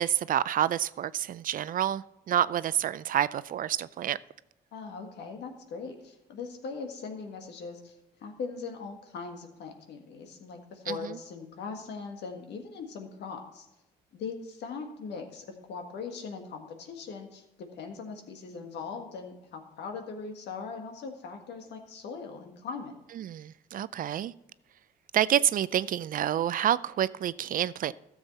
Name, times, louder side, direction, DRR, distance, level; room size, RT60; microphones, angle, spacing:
voice 1, 0.0-4.2 10.9-11.2 23.2-24.3 25.1-27.9, right 11 dB, 50° right, 0.4 m, -28 dB
voice 2, 4.7-7.9 8.2-13.7 14.1-23.0, left 5 dB, 70° left, 1.7 m, -40 dB
13.0 x 7.3 x 4.1 m
supercardioid pair, 70°, 18 cm